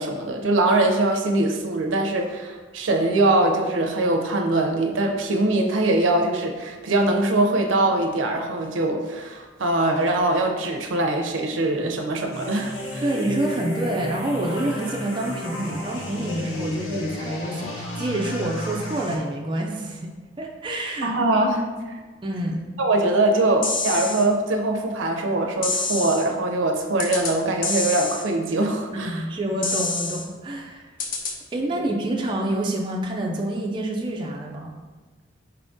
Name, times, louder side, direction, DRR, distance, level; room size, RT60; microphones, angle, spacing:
voice 1, 0.0-13.0 21.0-21.7 22.8-29.2 31.8-31.9, right 2 dB, 90° right, 3 dB, 0.5 m, -22 dB
sound 1, 12.3-19.1, left 1 dB, 80° left, 0.7 m, -32 dB
voice 2, 13.0-20.1 20.4-21.1 22.2-22.6 28.9-30.9 31.5-34.7, right 1 dB, 25° right, 0 dB, 0.3 m, -27 dB
sound 2, 23.6-24.2 25.6-26.2 27.0-27.3 27.6-28.2 29.6-30.2 31.0-31.3, left 3 dB, 45° left, 0.4 m, -27 dB
4.3 x 3.5 x 2.6 m, 1.3 s
head